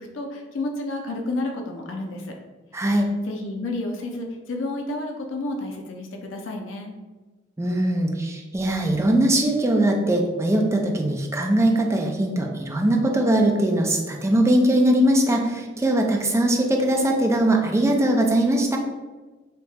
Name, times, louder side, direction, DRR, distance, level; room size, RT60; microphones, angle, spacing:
voice 1, 0.0-2.4 3.3-6.9, left 2 dB, 90° left, 2 dB, 0.4 m, -31 dB
voice 2, 2.7-3.1 7.6-18.8, right 1 dB, 15° right, 2 dB, 0.4 m, -21 dB
2.7 x 2.2 x 4.0 m, 1.3 s
head